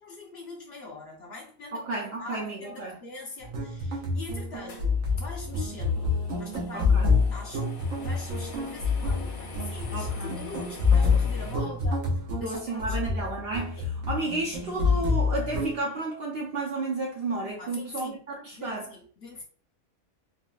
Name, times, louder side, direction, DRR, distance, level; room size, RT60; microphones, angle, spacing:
voice 1, 0.0-6.1 6.4-12.0 12.4-13.3 13.8-13.9 17.6-18.2 18.5-19.4, left 3 dB, 50° left, 1.0 m, -43 dB
voice 2, 1.7-3.0 6.7-7.1 9.9-10.3 11.6-11.7 12.4-13.8 14.1-18.9, right 2 dB, 60° right, 0.6 m, -32 dB
sound 1, 3.4-15.8, left 4 dB, 75° right, 1.1 m, -27 dB
sound 2, 4.7-11.5, left 2 dB, 80° left, 1.3 m, -45 dB
3.9 x 2.0 x 2.3 m
omnidirectional pair, 1.5 m